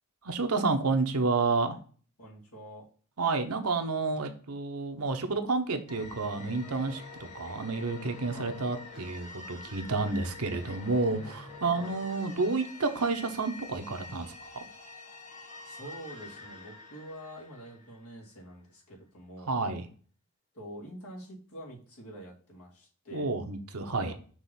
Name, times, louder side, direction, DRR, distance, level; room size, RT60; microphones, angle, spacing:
voice 1, 0.2-1.8 3.2-7.0 7.3-14.6 19.5-19.9 23.1-24.1, right 3 dB, 90° right, 6 dB, 1.0 m, -30 dB
voice 2, 2.2-2.9 8.3-8.6 11.8-12.0 15.6-19.6 20.5-23.3 24.1-24.2, equal, 90° left, -2 dB, 2.4 m, -46 dB
sound 1, 5.9-18.4, left 3 dB, 30° left, 1.1 m, -47 dB
6.1 x 3.1 x 5.8 m, 0.42 s
head